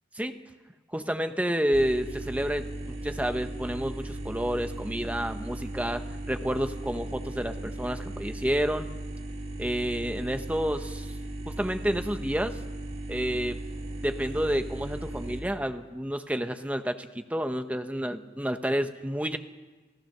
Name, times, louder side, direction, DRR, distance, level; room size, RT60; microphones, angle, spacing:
voice 1, 0.9-8.9 9.6-11.1 11.5-12.6 13.1-13.6 14.0-19.4, equal, 5° right, 8 dB, 0.9 m, -30 dB
sound 1, 1.7-15.4, right 1 dB, 35° right, 2.2 m, -37 dB
28.0 x 16.0 x 6.7 m, 1.3 s
head